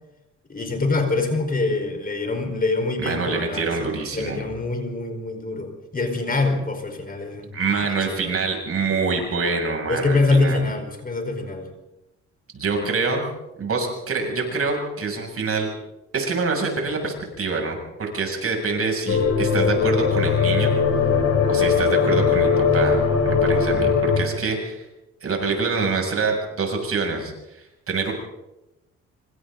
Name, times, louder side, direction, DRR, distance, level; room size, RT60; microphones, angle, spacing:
voice 1, 0.5-7.5 7.8-8.3 9.9-11.7, left 3 dB, 30° left, 5 dB, 4.6 m, -24 dB
voice 2, 3.0-4.4 7.5-10.6 12.5-13.2 13.6-15.7 16.1-20.7 21.5-24.9 25.2-28.1, right 4 dB, 50° right, 2 dB, 7.2 m, -26 dB
sound 1, 19.1-24.2, left 5 dB, 55° left, 6.9 m, -19 dB
26.0 x 25.5 x 3.9 m, 0.92 s
cardioid pair, 90°, 30 cm